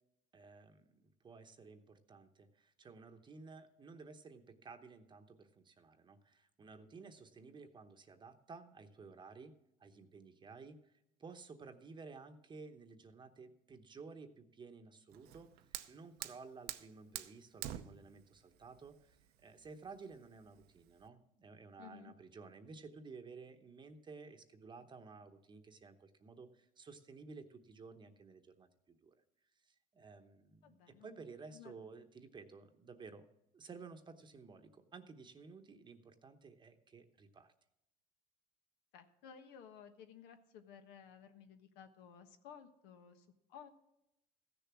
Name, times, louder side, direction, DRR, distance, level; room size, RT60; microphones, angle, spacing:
voice 1, 0.3-9.5 9.8-29.1 29.6-33.3 33.5-37.5, right 4 dB, 30° right, 7 dB, 0.9 m, -54 dB
Fire, 15.1-21.1, right 12 dB, 75° right, 0.8 m, -49 dB
voice 2, 21.8-22.1 30.6-31.1 31.5-31.7 38.9-43.7, left 8 dB, 85° left, 7 dB, 1.3 m, -56 dB
15.0 x 6.9 x 6.1 m, 0.85 s
cardioid pair, 120°, 16 cm